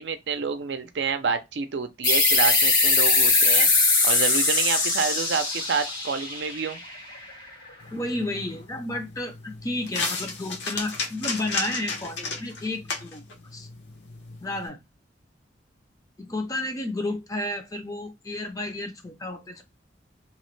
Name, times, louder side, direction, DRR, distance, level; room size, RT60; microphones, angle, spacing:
voice 1, 0.0-3.7 4.0-6.8, right 5 dB, 70° right, 0.5 m, -28 dB
sound 1, 2.0-7.3, left 3 dB, 90° left, 1.7 m, -21 dB
sound 2, 7.8-14.7, left 4 dB, 75° left, 0.9 m, -34 dB
voice 2, 7.9-13.2 13.5-13.7 14.4-14.8 16.2-19.6, left 1 dB, 20° left, 0.5 m, -32 dB
2.9 x 2.1 x 3.1 m
head